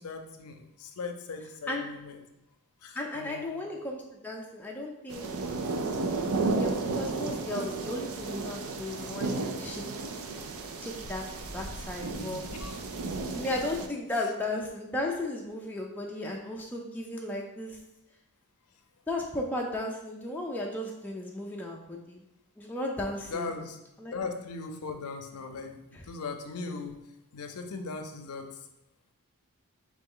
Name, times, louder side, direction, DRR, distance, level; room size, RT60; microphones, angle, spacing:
voice 1, 0.0-2.2 2.8-3.5 12.1-12.8 23.3-23.8 24.1-27.0 27.3-28.5, left 4 dB, 85° left, 5 dB, 0.5 m, -39 dB
voice 2, 2.9-5.2 6.6-9.8 10.8-12.4 13.3-17.8 19.1-22.2 22.6-23.5 24.0-24.1 25.9-26.0, left 1 dB, 10° left, -1 dB, 0.4 m, -35 dB
sound 1, 5.1-13.9, right 3 dB, 75° right, 0.4 m, -33 dB
4.0 x 3.1 x 3.7 m, 0.88 s
head